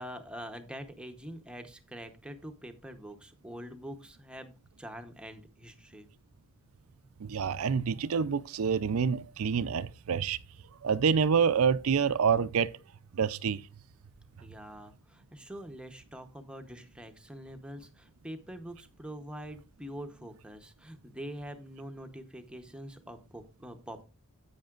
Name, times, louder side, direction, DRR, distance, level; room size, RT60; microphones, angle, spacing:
voice 1, 0.0-6.1 14.4-24.0, equal, 5° right, 0.9 m, -45 dB
voice 2, 7.2-10.4 10.8-12.7 13.1-13.6, right 6 dB, 75° right, 0.5 m, -27 dB
10.5 x 8.6 x 2.4 m
head